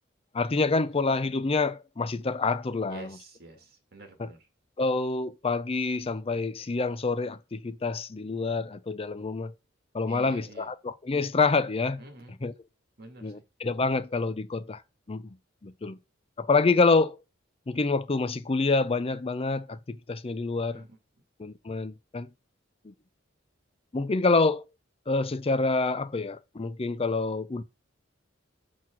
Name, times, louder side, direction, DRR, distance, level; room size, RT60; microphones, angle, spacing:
voice 1, 0.3-3.2 4.2-4.3 4.8-9.5 9.9-12.0 12.4-12.5 13.2-14.8 15.1-15.3 15.6-16.0 16.4-17.2 17.7-20.8 21.4-22.3 22.8-22.9 23.9-24.6 25.1-27.6, left 3 dB, 30° left, 0.5 m, -27 dB
voice 2, 2.9-4.5 10.1-10.7 12.0-12.4 13.0-13.4 20.7-21.0, right 3 dB, 55° right, 1.9 m, -48 dB
6.0 x 4.0 x 6.1 m
head